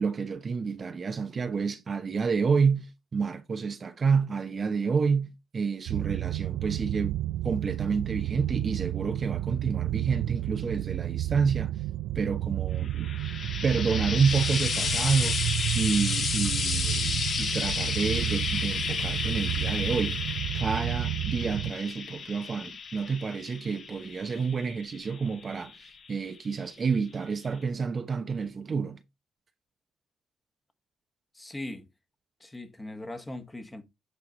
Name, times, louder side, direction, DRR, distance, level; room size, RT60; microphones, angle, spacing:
voice 1, 0.0-7.1 7.4-11.8 12.1-13.1 13.6-15.4 15.7-20.2 20.5-29.0, right 5 dB, 40° right, 0.8 m, -29 dB
sound 1, 5.9-21.7, right 14 dB, 90° right, 0.4 m, -31 dB
Frying (food), 12.8-26.3 27.2-27.3, left 5 dB, 55° left, 1.7 m, -32 dB
voice 2, 31.3-31.9 32.4-33.8, left 1 dB, 15° left, 1.4 m, -39 dB
8.4 x 4.7 x 3.8 m
cardioid pair, 90°, 0 cm